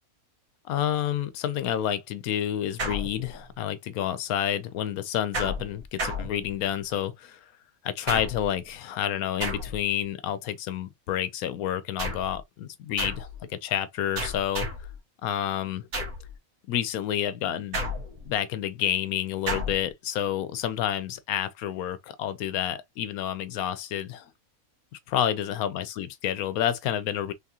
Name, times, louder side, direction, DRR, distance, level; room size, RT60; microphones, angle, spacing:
voice 1, 0.7-7.4 7.8-14.7 15.2-15.9 16.7-17.8 18.3-24.3 25.1-27.3, left 10 dB, 85° left, 1.0 m, -29 dB
sound 1, 2.8-3.6 5.3-6.9 8.1-8.6 9.4-10.0 12.0-12.4 13.0-13.4 14.2-15.0 15.9-16.3 17.7-18.4 19.5-19.9, equal, 70° right, 2.0 m, -33 dB
3.8 x 3.6 x 2.8 m
omnidirectional pair, 1.5 m